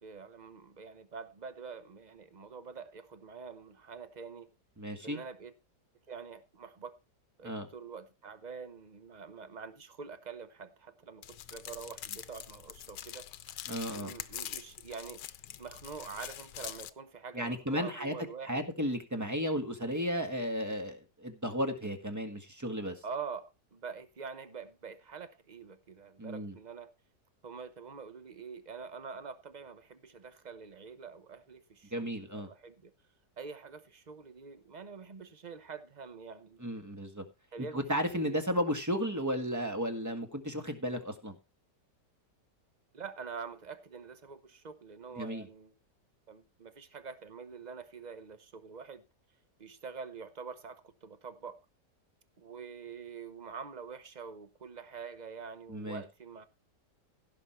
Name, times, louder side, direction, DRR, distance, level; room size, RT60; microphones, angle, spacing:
voice 1, 0.0-4.5 5.0-5.5 6.1-6.9 7.4-13.3 13.9-15.2 15.6-18.7 23.0-26.9 27.4-32.9 33.4-36.6 37.5-38.4 42.9-45.7 46.3-49.0 49.6-51.6 52.4-56.5, right 5 dB, 30° right, 0.8 m, -45 dB
voice 2, 4.8-5.2 7.4-7.7 13.7-14.1 17.3-18.1 18.4-23.0 26.2-26.5 31.9-32.5 36.6-37.2 37.7-41.3 45.2-45.4 55.7-56.0, equal, 10° right, 1.5 m, -34 dB
sound 1, 11.2-16.9, left 12 dB, 85° left, 1.4 m, -44 dB
16.0 x 6.3 x 4.4 m
omnidirectional pair, 1.8 m